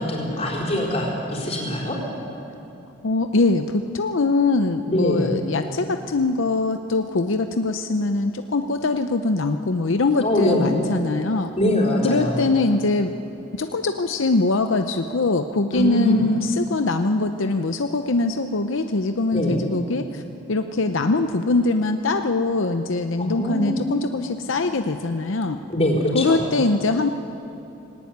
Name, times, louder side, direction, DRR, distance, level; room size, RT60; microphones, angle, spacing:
voice 1, 0.0-2.0 4.9-5.3 10.2-10.7 11.5-12.4 15.7-16.2 19.3-19.6 23.2-23.8 25.7-26.4, left 1 dB, 30° left, -2 dB, 4.4 m, -23 dB
voice 2, 3.0-11.5 12.0-13.1 13.6-20.2 20.5-25.6 26.1-27.1, left 3 dB, 75° left, 7 dB, 0.7 m, -22 dB
19.0 x 18.0 x 9.4 m, 2.9 s
head